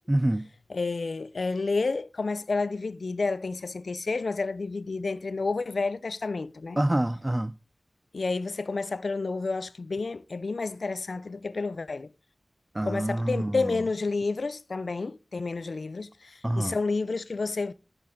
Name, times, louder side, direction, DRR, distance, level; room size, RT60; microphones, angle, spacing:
voice 1, 0.1-0.5 6.8-7.5 12.7-13.8 16.4-16.8, right 1 dB, 20° right, 0.4 m, -26 dB
voice 2, 0.7-6.8 8.1-12.1 12.8-17.7, left 3 dB, 70° left, 0.5 m, -30 dB
9.9 x 7.2 x 3.7 m
wide cardioid pair, 60°, 0 cm